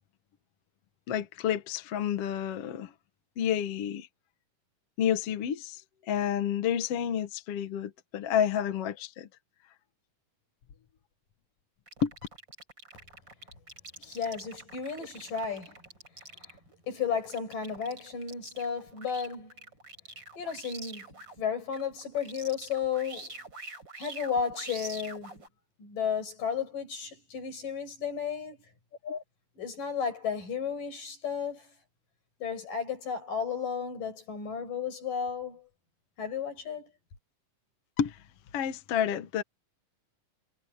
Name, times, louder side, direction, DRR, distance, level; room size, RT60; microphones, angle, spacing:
voice 1, 1.1-2.9 3.4-4.1 5.0-9.3 12.0-12.1 29.0-29.2 38.0-38.2 38.5-39.4, left 9 dB, 55° left, 2.0 m, -30 dB
sound 1, 11.9-21.4 21.7-25.5, right 2 dB, 30° right, 6.5 m, -46 dB
voice 2, 14.0-15.7 16.4-16.6 16.9-19.5 20.4-21.1 21.4-23.3 24.0-25.5 25.8-28.6 29.6-31.7 32.4-35.7 36.2-36.9, left 7 dB, 80° left, 8.2 m, -33 dB
omnidirectional pair, 3.8 m